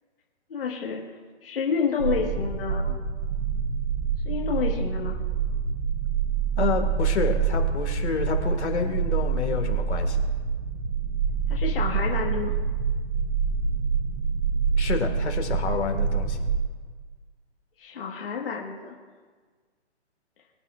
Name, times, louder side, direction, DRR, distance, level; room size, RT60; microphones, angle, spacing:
voice 1, 0.5-1.0 1.4-2.9 4.2-5.2 11.5-12.5 17.8-18.9, left 6 dB, 55° left, -2 dB, 1.6 m, -29 dB
sound 1, 2.0-16.6, right 6 dB, 35° right, 0.8 m, -26 dB
voice 2, 6.6-10.2 14.8-16.4, left 5 dB, 80° left, 3 dB, 2.0 m, -28 dB
23.5 x 8.9 x 2.5 m, 1.5 s
hypercardioid pair, 170°, 34 cm